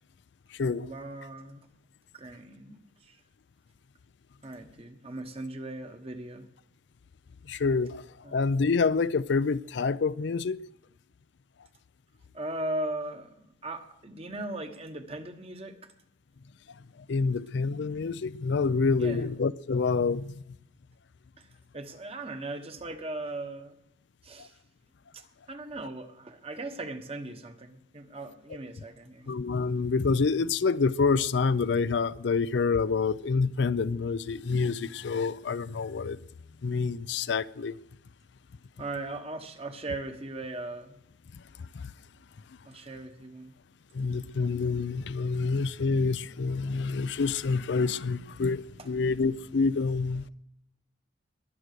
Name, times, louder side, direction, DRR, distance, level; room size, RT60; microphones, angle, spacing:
voice 1, 0.7-1.7 2.1-3.2 4.4-6.5 8.2-8.4 12.3-15.9 19.0-19.3 21.4-21.5 21.7-23.8 24.2-24.6 25.1-29.3 38.8-41.0 42.6-43.5 48.8-48.9, right 2 dB, 30° right, 1.2 m, -38 dB
voice 2, 7.5-8.0 8.3-10.6 17.1-20.3 24.4-24.5 29.3-36.2 36.6-37.7 41.7-41.8 43.9-50.2, left 4 dB, 70° left, 0.5 m, -27 dB
21.0 x 7.8 x 6.7 m
head